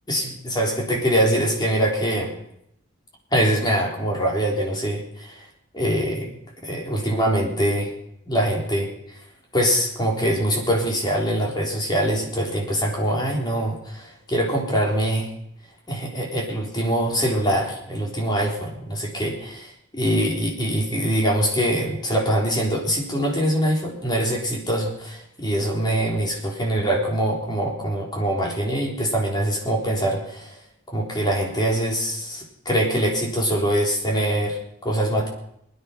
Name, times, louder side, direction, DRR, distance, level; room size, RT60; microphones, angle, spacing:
voice 1, 0.1-2.3 3.3-5.4 5.7-6.3 6.6-7.9 8.3-8.9 9.5-15.3 15.9-30.6 30.9-35.3, right 1 dB, 20° left, -1 dB, 3.9 m, -23 dB
22.5 x 10.0 x 5.6 m, 0.74 s
head